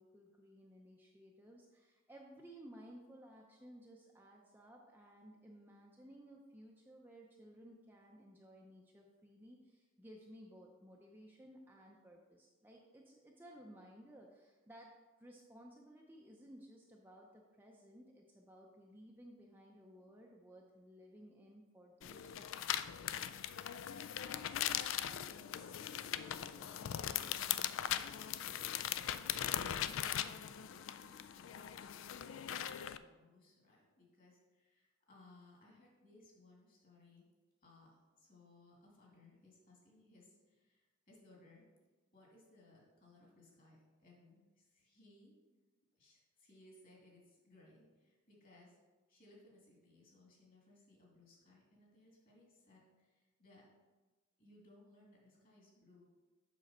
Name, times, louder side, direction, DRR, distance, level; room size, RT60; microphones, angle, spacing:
voice 1, 0.0-14.9 15.2-23.5, equal, 10° right, -1 dB, 0.5 m, -58 dB
sound 1, 22.0-33.0, left 10 dB, 65° left, 0.3 m, -40 dB
voice 2, 25.3-29.1 29.5-37.2 37.6-41.6 42.1-45.4 46.0-48.8 49.1-53.6 54.4-56.1, left 2 dB, 40° left, -3 dB, 2.3 m, -64 dB
7.5 x 6.3 x 4.2 m, 1.3 s
head